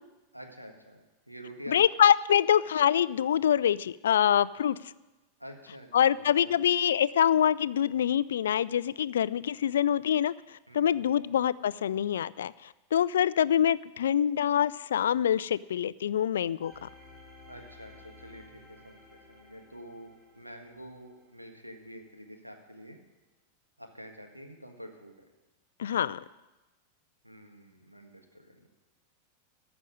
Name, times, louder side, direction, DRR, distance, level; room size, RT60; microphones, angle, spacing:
voice 1, 0.3-1.8 5.4-6.6 10.7-11.3 17.5-23.0 23.8-25.2 27.2-28.7, equal, 90° right, 3 dB, 1.6 m, -48 dB
voice 2, 1.7-4.8 5.9-10.3 10.7-12.5 12.9-16.9 25.8-26.2, left 9 dB, 65° left, 19 dB, 0.3 m, -25 dB
sound 1, 16.6-21.4 21.9-22.0, left 2 dB, 25° right, 4.9 m, -54 dB
13.5 x 6.1 x 9.5 m, 1.1 s
figure-of-eight pair, 90°, 0 cm